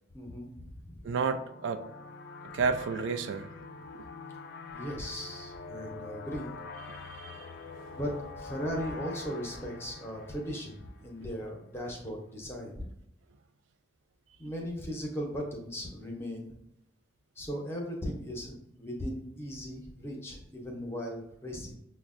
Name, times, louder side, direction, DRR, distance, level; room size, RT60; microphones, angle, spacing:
voice 1, 0.1-1.0 4.7-6.6 7.9-12.9 14.4-16.5 17.4-21.8, equal, 15° left, 0 dB, 0.6 m, -37 dB
sound 1, 1.0-11.4, left 3 dB, 55° left, 0.3 m, -45 dB
voice 2, 1.0-1.8 2.5-3.5 3.9-4.1 6.9-7.5, right 5 dB, 90° right, 8 dB, 0.3 m, -31 dB
6.0 x 2.0 x 2.4 m, 0.80 s
head